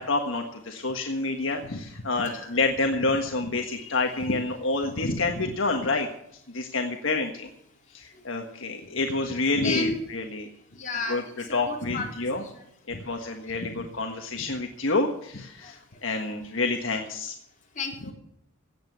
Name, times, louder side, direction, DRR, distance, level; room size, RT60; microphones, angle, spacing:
voice 1, 0.0-6.1 6.5-7.5 7.9-10.5 11.1-11.2 11.5-12.4 12.9-17.3, left 3 dB, 70° left, 3 dB, 1.5 m, -28 dB
voice 2, 9.6-10.0 10.8-11.2 11.5-12.3 15.6-15.7 17.8-18.1, left 3 dB, 40° left, 0 dB, 4.0 m, -32 dB
17.0 x 8.3 x 6.7 m, 0.75 s
head